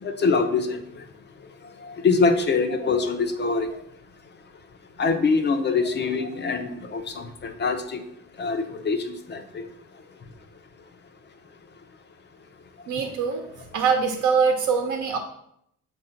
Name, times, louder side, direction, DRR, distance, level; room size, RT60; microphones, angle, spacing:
voice 1, 0.0-1.0 1.8-3.8 5.0-8.0 8.4-9.6, left 4 dB, 35° left, 7 dB, 0.6 m, -24 dB
voice 2, 12.9-13.4 13.7-15.2, right 5 dB, 65° right, 3 dB, 0.8 m, -23 dB
7.5 x 2.6 x 5.7 m, 0.74 s
cardioid pair, 150°, 32 cm